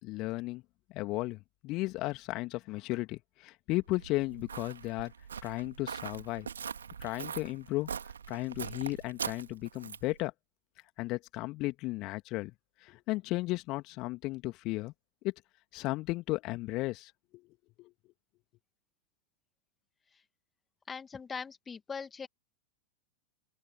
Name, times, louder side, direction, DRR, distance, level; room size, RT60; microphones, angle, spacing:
voice 1, 0.0-0.6 0.9-5.1 5.4-6.5 7.0-7.9 8.3-10.3 11.0-12.5 12.8-14.9 15.2-15.3 15.7-17.4 17.8-17.9, left 20 dB, 40° left, 2.4 m, -35 dB
Walk footsteps, 3.9-10.2, right 7 dB, 70° right, 2.7 m, -42 dB
voice 2, 20.9-22.3, left 5 dB, 15° left, 1.5 m, -41 dB
open air
figure-of-eight pair, 90°, 0 cm